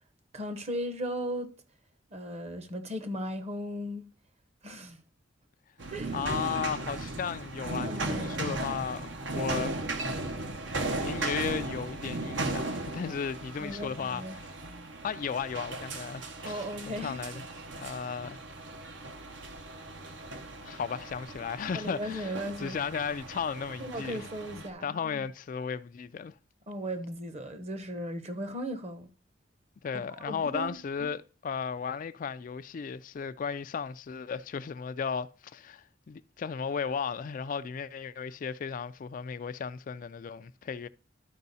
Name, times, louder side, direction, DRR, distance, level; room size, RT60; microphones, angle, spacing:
voice 1, 0.3-1.5 2.1-4.1 4.6-5.0 5.9-6.1 7.8-8.6 13.0-13.1 13.6-14.3 16.4-17.2 21.7-22.8 23.8-25.2 26.7-29.1 29.9-30.8, equal, 35° right, 0.9 m, -37 dB
sound 1, 5.8-24.7, right 2 dB, 80° right, 1.1 m, -37 dB
voice 2, 6.1-9.8 10.8-14.5 15.0-17.4 17.7-18.4 20.6-24.3 24.8-26.3 29.8-40.9, left 6 dB, 45° left, 0.3 m, -35 dB
12.0 x 4.7 x 4.1 m
head